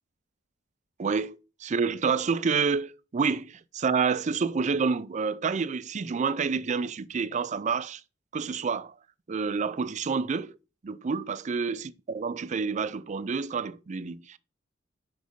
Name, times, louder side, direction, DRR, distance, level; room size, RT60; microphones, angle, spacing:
voice 1, 1.0-8.0 8.3-8.9 9.3-10.6 10.8-14.4, right 5 dB, 40° right, 0.4 m, -28 dB
6.6 x 5.2 x 5.1 m
head